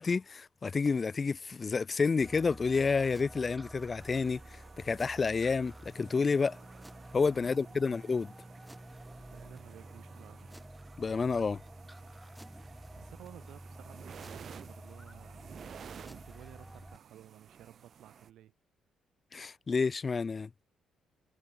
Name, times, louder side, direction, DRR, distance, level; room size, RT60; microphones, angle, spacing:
voice 1, 0.0-6.6 7.1-8.3 11.0-11.6 19.3-20.5, left 4 dB, 35° left, 0.4 m, -30 dB
sound 1, 2.2-17.0, right 1 dB, 5° right, 0.8 m, -50 dB
sound 2, 4.0-18.3, right 7 dB, 55° right, 4.1 m, -54 dB
voice 2, 7.4-7.9 9.1-10.5 12.9-15.5 16.1-18.5, right 12 dB, 80° right, 2.8 m, -55 dB
cardioid pair, 90°, 0 cm